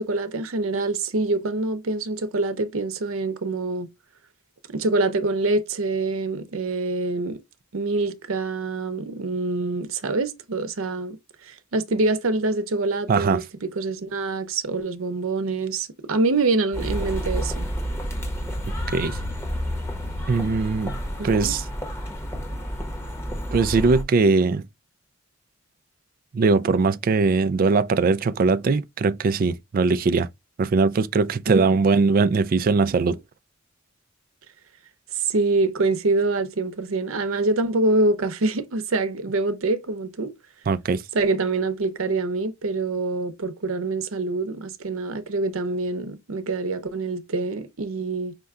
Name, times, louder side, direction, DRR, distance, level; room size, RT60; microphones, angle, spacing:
voice 1, 0.0-3.9 4.7-7.4 7.7-11.2 11.4-17.7 21.2-21.5 31.5-31.7 35.1-40.3 41.1-48.4, right 3 dB, 80° right, 0.7 m, -25 dB
voice 2, 13.1-13.4 18.9-19.2 20.3-21.0 21.2-21.6 23.5-24.6 26.3-30.3 30.6-33.2 40.7-41.0, right 4 dB, 45° right, 0.3 m, -20 dB
sound 1, 16.7-24.0, equal, 10° left, 1.0 m, -30 dB
5.3 x 2.2 x 3.6 m
head